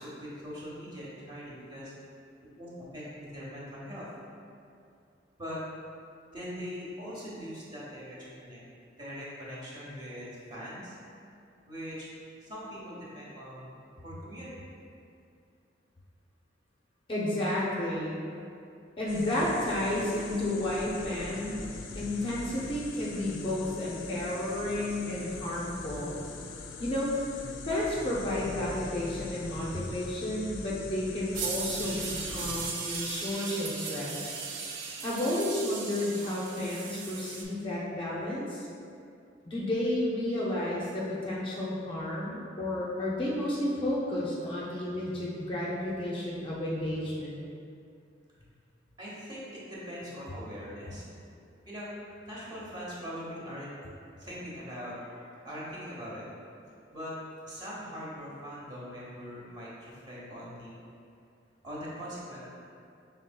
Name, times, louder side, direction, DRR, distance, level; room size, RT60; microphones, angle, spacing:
voice 1, 0.0-1.9 2.6-4.1 5.4-5.6 6.3-8.6 9.0-10.9 11.7-12.1 12.4-13.7 14.0-14.5 49.0-51.1 51.7-51.9 52.2-53.7 54.2-56.2 56.9-57.2 57.4-60.8 61.6-62.4, equal, 25° right, -7 dB, 0.9 m, -41 dB
voice 2, 17.1-18.1 19.0-21.7 21.9-26.2 26.8-27.1 27.7-34.3 35.0-38.7 39.5-47.4, left 1 dB, 25° left, -6 dB, 0.5 m, -32 dB
sound 1, 19.1-32.7, left 3 dB, 90° left, 0.4 m, -42 dB
sound 2, 31.3-37.4, right 5 dB, 75° right, 0.5 m, -37 dB
5.5 x 3.4 x 2.2 m, 2.5 s
head